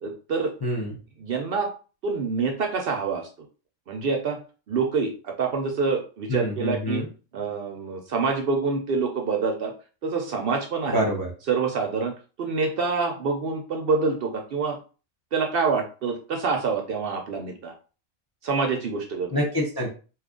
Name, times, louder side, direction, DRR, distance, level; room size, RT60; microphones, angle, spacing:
voice 1, 0.0-0.5 1.2-1.7 2.0-3.3 3.9-4.4 4.7-7.1 7.3-9.7 10.0-11.0 11.5-14.8 15.3-17.7 18.4-19.3, right 4 dB, 60° right, 3 dB, 0.6 m, -26 dB
voice 2, 0.6-0.9 6.3-7.1 10.9-11.3 19.3-19.9, equal, 25° left, -1 dB, 0.5 m, -26 dB
2.8 x 2.4 x 3.6 m, 0.35 s
omnidirectional pair, 1.3 m